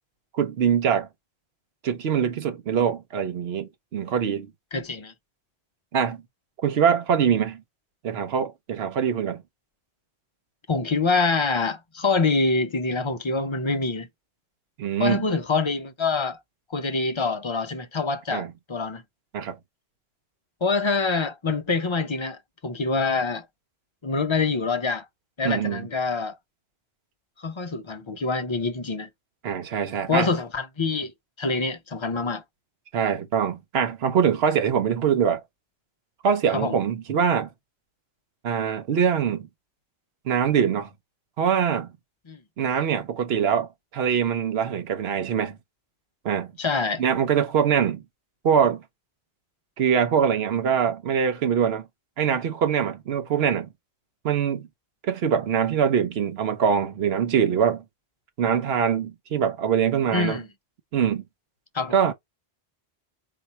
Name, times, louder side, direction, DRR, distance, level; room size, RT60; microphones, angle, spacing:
voice 1, 0.3-1.1 1.8-4.5 5.9-6.2 6.6-7.6 8.0-9.4 14.8-15.2 18.3-18.5 19.3-19.6 25.4-25.9 29.4-30.3 32.9-35.4 36.2-37.5 38.4-39.5 40.3-40.9 41.4-41.9 42.6-45.6 46.2-46.5 47.0-48.0 48.4-48.8 49.8-51.9 52.2-53.7 54.2-54.7 55.0-57.8 58.4-60.4 60.9-61.2 61.9-62.1, right 7 dB, 80° right, 1.0 m, -23 dB
voice 2, 4.7-5.1 10.7-14.1 15.0-16.4 16.7-19.0 20.6-23.4 24.0-25.0 25.4-26.4 27.4-29.1 30.1-31.1 31.4-32.4 36.5-36.8 42.3-42.4 46.6-47.0 60.1-60.5 61.7-62.0, left 4 dB, 35° left, 0.6 m, -25 dB
4.2 x 2.1 x 4.2 m
omnidirectional pair, 1.0 m